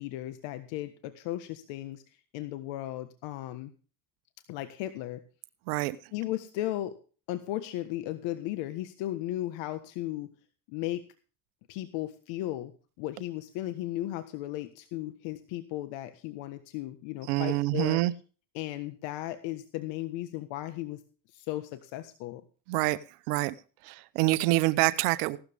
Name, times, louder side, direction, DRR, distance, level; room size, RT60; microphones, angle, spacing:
voice 1, 0.0-2.0 2.3-3.7 4.5-5.2 6.1-7.0 7.3-10.3 10.7-11.0 11.7-12.7 13.0-18.0 18.5-21.0 21.3-22.4, left 14 dB, 75° left, 1.5 m, -35 dB
voice 2, 17.3-18.1 22.7-23.0 23.3-23.5 23.8-25.4, right 19 dB, 90° right, 1.0 m, -26 dB
16.5 x 13.0 x 3.6 m
supercardioid pair, 100°, 44 cm